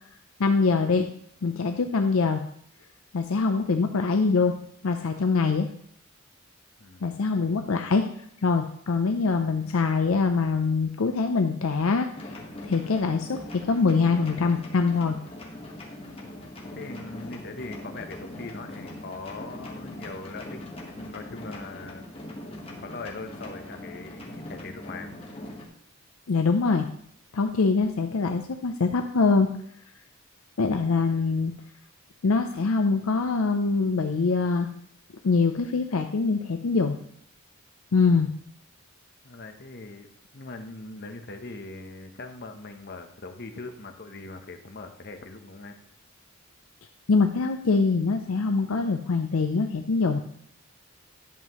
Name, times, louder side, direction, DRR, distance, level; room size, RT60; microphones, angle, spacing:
voice 1, 0.4-1.1 1.4-2.4 3.1-4.5 4.8-5.7 7.0-8.1 8.4-12.4 12.6-13.4 13.6-15.2 26.3-26.9 27.3-29.5 30.6-31.5 32.2-34.7 35.2-37.0 37.9-38.3 47.1-50.2, left 4 dB, 70° left, 6 dB, 0.5 m, -23 dB
sound 1, 12.1-25.7, left 1 dB, 25° left, 1.3 m, -41 dB
voice 2, 16.6-20.6 20.9-22.0 22.8-25.1 39.2-40.1 40.3-45.8, left 3 dB, 50° left, 6 dB, 0.9 m, -41 dB
11.0 x 7.4 x 3.0 m, 0.66 s
head